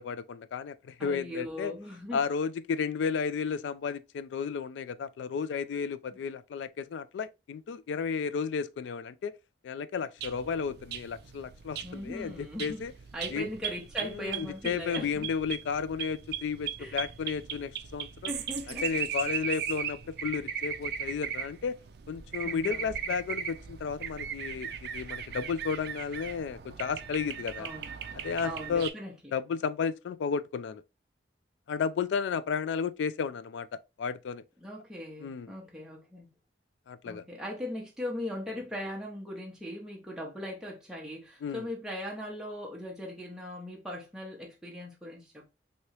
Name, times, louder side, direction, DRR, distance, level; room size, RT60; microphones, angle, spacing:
voice 1, 0.0-1.7 2.1-9.3 9.6-12.9 13.3-13.5 14.0-18.3 18.7-21.8 22.1-27.7 28.1-28.9 29.3-30.8 31.7-33.7 34.0-34.4 35.2-35.5 36.9-37.2 41.4-41.6, left 6 dB, 80° left, 0.3 m, -33 dB
voice 2, 1.0-2.2 6.1-6.2 11.8-12.8 13.1-15.3 16.8-17.0 18.3-18.9 19.3-19.4 22.4-22.9 27.6-27.9 28.4-29.3 34.6-36.3 37.1-45.5, left 1 dB, 5° right, 0.6 m, -39 dB
sound 1, 10.2-28.9, right 8 dB, 60° right, 0.3 m, -38 dB
3.1 x 2.7 x 2.9 m
head